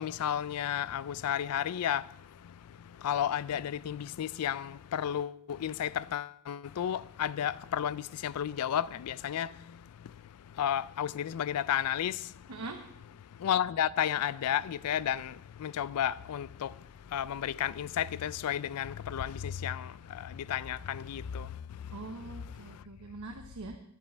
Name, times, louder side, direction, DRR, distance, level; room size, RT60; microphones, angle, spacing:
voice 1, 0.0-2.1 2.4-10.1 10.5-12.3 13.4-22.8, left 10 dB, 80° left, 0.4 m, -33 dB
voice 2, 12.5-12.8 21.9-23.8, right 3 dB, 75° right, 0.9 m, -43 dB
10.5 x 10.5 x 4.3 m
head